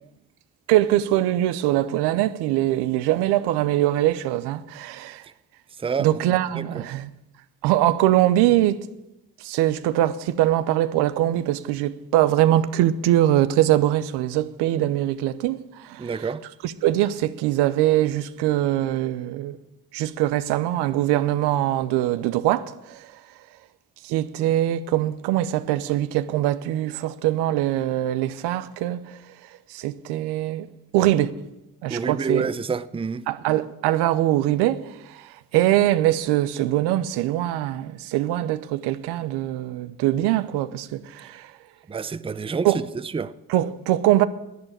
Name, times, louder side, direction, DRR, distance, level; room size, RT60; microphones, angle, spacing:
voice 1, 0.7-5.2 6.0-7.1 7.6-8.8 9.4-16.3 16.6-19.6 19.9-23.1 24.0-29.0 29.7-30.7 30.9-31.3 31.8-32.5 33.3-41.5 42.6-42.8 43.5-44.3, right 14 dB, 90° right, 0.8 m, -22 dB
voice 2, 16.0-16.4 31.9-33.2 41.9-42.7 43.1-43.3, right 5 dB, 15° right, 0.5 m, -28 dB
10.5 x 9.0 x 9.9 m
supercardioid pair, 80°, 39 cm